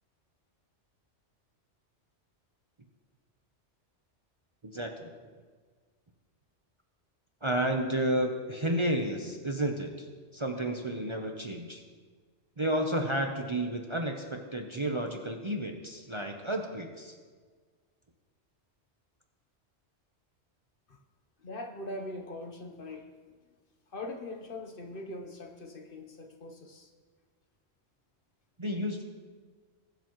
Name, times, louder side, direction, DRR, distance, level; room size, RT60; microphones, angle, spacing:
voice 1, 4.6-5.1 7.4-10.1 10.3-11.8 12.6-17.1 28.6-29.0, right 1 dB, 30° right, 2 dB, 0.7 m, -31 dB
voice 2, 21.4-23.1 23.9-26.9, left 2 dB, 50° left, 3 dB, 1.1 m, -41 dB
21.0 x 7.0 x 3.1 m, 1.5 s
omnidirectional pair, 1.2 m